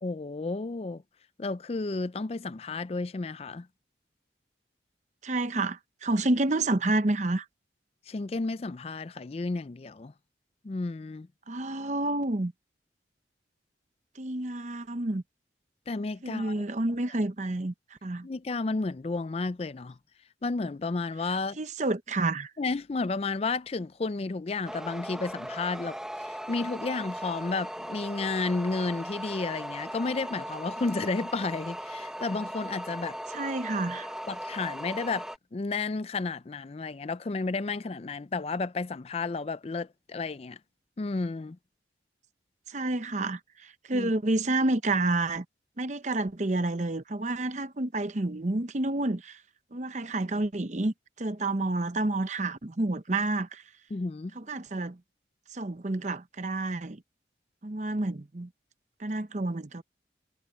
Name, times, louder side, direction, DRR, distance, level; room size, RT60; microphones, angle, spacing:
voice 1, 0.0-1.0 1.4-3.7 8.1-10.1 10.6-11.3 15.9-16.7 18.2-20.0 20.4-21.6 22.6-33.2 34.3-40.6 41.0-41.6 43.9-44.1 53.9-54.3, left 3 dB, 35° left, 0.4 m, -32 dB
voice 2, 5.2-7.5 11.5-12.5 14.2-15.2 16.2-17.7 18.0-18.3 21.6-22.5 33.3-34.1 42.7-45.4 45.8-49.4 49.7-53.6 54.4-55.0 55.5-57.0 57.6-58.5 59.0-59.8, right 2 dB, 40° right, 0.8 m, -29 dB
sound 1, 24.6-35.4, equal, 5° right, 1.2 m, -38 dB
head